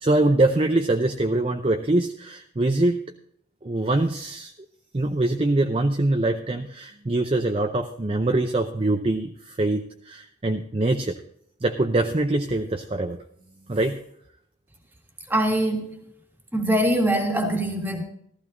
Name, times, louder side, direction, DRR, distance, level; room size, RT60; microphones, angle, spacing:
voice 1, 0.0-3.0 3.6-4.5 4.9-11.2 11.6-13.2 13.7-14.0, right 2 dB, 30° right, 0.6 m, -23 dB
voice 2, 15.3-16.0 16.5-18.0, right 1 dB, 10° right, 1.8 m, -23 dB
15.0 x 14.5 x 2.6 m
head